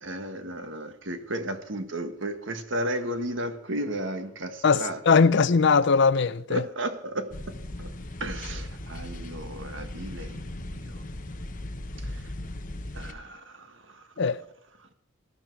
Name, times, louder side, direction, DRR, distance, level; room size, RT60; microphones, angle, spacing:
voice 1, 0.0-5.4 6.5-7.9 8.2-11.1 12.0-12.2 12.9-14.0, right 1 dB, 60° right, 1.6 m, -34 dB
voice 2, 4.6-6.6 14.2-14.4, left 5 dB, 55° left, 0.5 m, -20 dB
sound 1, 7.3-13.1, left 1 dB, 40° left, 1.2 m, -37 dB
18.5 x 12.0 x 4.7 m
head